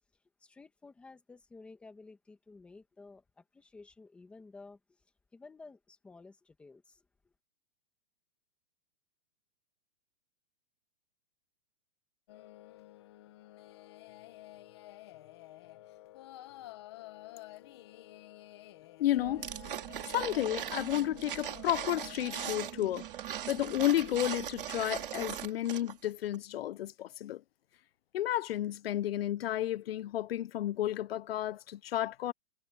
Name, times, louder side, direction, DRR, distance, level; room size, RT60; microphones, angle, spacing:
voice 1, 0.4-5.0 5.3-7.3, left 3 dB, 5° left, 1.5 m, -54 dB
sound 1, 12.3-22.6, left 16 dB, 25° left, 1.0 m, -51 dB
voice 2, 19.0-19.5 20.1-23.1 23.5-27.4 28.1-32.3, left 13 dB, 80° left, 0.5 m, -32 dB
sound 2, 19.2-25.5, right 21 dB, 20° right, 2.3 m, -48 dB
sound 3, 19.4-26.1 26.3-26.4, right 10 dB, 65° right, 4.0 m, -40 dB
hypercardioid pair, 180°, 29 cm